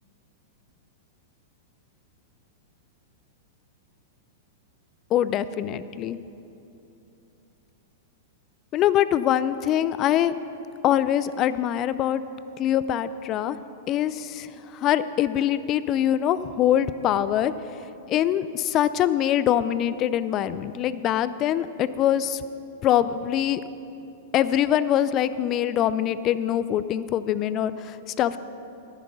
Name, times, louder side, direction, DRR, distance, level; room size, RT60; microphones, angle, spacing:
voice 1, 5.1-6.2 8.7-10.3 10.8-12.2 12.6-13.6 13.9-17.5 18.1-22.4 22.8-23.6 24.3-28.4, left 11 dB, 35° left, 14 dB, 0.4 m, -23 dB
10.5 x 10.0 x 5.6 m, 2.8 s
hypercardioid pair, 110°, 0 cm